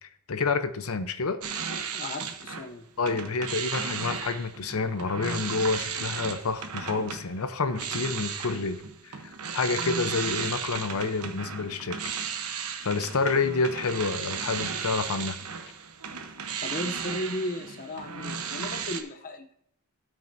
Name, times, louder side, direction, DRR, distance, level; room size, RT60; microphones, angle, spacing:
voice 1, 0.0-1.4 3.0-8.8 9.0-9.1 9.5-12.0 12.8-15.4, left 4 dB, 75° left, 10 dB, 0.8 m, -28 dB
sound 1, 1.4-2.7 3.0-19.0, right 6 dB, 90° right, 1.0 m, -35 dB
voice 2, 1.9-2.9 16.6-19.5, left 1 dB, 40° left, 5 dB, 0.6 m, -35 dB
17.5 x 6.1 x 2.7 m, 0.71 s
head